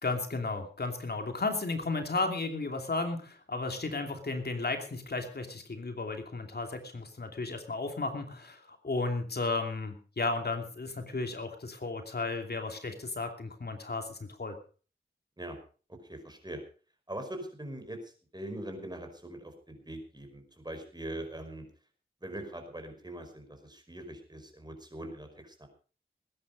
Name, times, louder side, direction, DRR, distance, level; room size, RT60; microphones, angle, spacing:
voice 1, 0.0-14.6, left 3 dB, 55° left, 5 dB, 2.8 m, -34 dB
voice 2, 16.0-16.6 17.1-21.6 22.2-25.7, right 1 dB, 20° right, 5 dB, 5.0 m, -42 dB
20.5 x 10.0 x 5.2 m, 0.39 s
wide cardioid pair, 70°, 20 cm